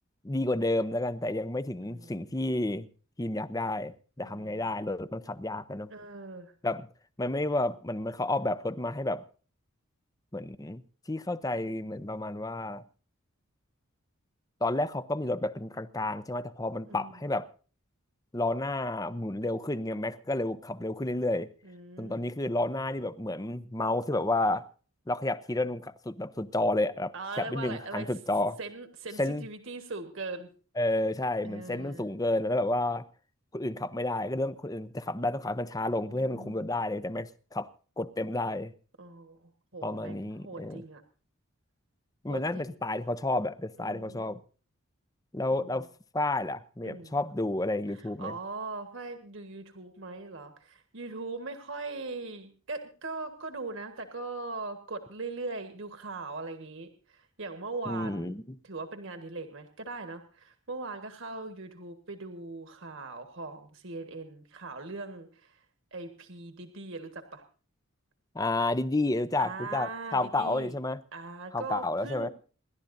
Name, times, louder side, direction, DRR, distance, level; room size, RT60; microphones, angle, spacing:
voice 1, 0.2-2.9 3.2-5.9 6.6-6.9 7.2-9.2 10.3-10.8 11.1-12.8 14.6-17.5 18.3-21.5 22.0-24.6 25.1-28.6 29.2-29.4 30.8-33.1 33.5-37.7 38.0-38.7 39.8-40.8 42.2-44.4 45.3-45.9 46.1-48.3 57.9-58.4 68.3-71.0 71.5-72.3, left 2 dB, 15° left, 0.6 m, -31 dB
voice 2, 1.8-2.3 4.2-4.7 5.9-6.5 16.9-17.2 21.6-22.3 27.1-28.1 28.6-30.5 31.4-32.1 36.1-36.7 39.0-41.0 42.3-42.7 43.8-44.4 45.6-45.8 46.8-47.1 47.9-65.6 65.9-67.4 69.4-70.7 71.1-72.3, right 3 dB, 60° right, 1.5 m, -40 dB
27.5 x 12.0 x 2.6 m
head